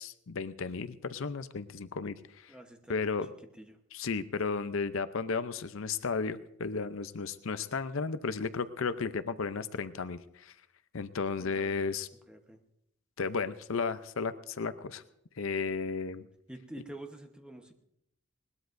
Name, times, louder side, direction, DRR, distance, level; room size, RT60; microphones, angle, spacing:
voice 1, 0.0-2.5 2.9-3.3 3.9-10.5 10.9-12.1 13.2-15.0 15.4-16.3, left 4 dB, 65° left, 12 dB, 0.6 m, -34 dB
voice 2, 2.5-3.8 11.4-11.9 12.3-12.6 16.5-17.7, right 1 dB, 5° right, 4 dB, 1.0 m, -48 dB
20.5 x 19.5 x 2.6 m, 0.78 s
head